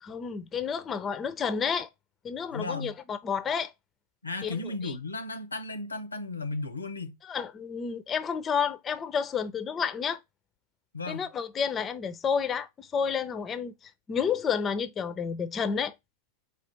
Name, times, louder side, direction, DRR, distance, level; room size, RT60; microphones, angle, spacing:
voice 1, 0.0-1.9 2.2-3.7 4.4-4.9 7.2-10.2 11.1-15.9, left 6 dB, 25° left, 0.5 m, -30 dB
voice 2, 2.5-3.0 4.2-7.2 10.9-11.3, left 3 dB, 80° left, 0.6 m, -35 dB
4.9 x 2.4 x 4.5 m
figure-of-eight pair, 90°, 0 cm